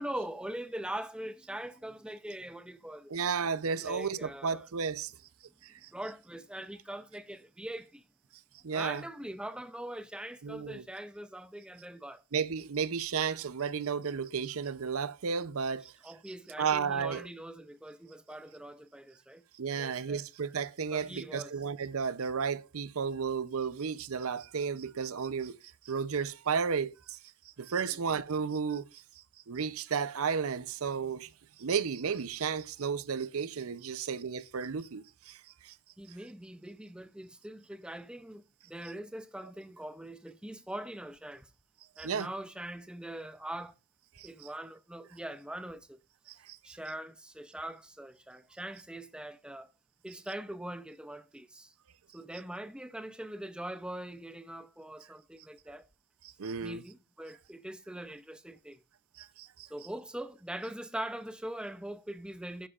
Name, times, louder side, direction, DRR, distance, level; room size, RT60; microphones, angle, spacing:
voice 1, 0.0-3.1 3.8-4.6 5.9-8.0 8.7-12.2 16.0-19.4 19.8-20.2 20.9-21.5 27.8-28.0 36.0-41.5 42.0-43.7 44.2-46.0 46.6-49.7 50.0-51.7 52.1-55.9 56.6-58.8 59.7-62.7, right 1 dB, 5° right, 0.5 m, -42 dB
voice 2, 3.1-5.1 5.6-5.9 8.6-9.0 10.4-10.8 12.3-15.9 16.6-17.3 19.6-25.6 25.8-27.2 27.6-29.0 29.5-31.3 31.6-35.7 42.0-42.3 44.2-44.3 46.3-46.6 56.4-56.8 59.2-59.7, right 6 dB, 75° right, 0.6 m, -33 dB
11.0 x 10.0 x 2.4 m
head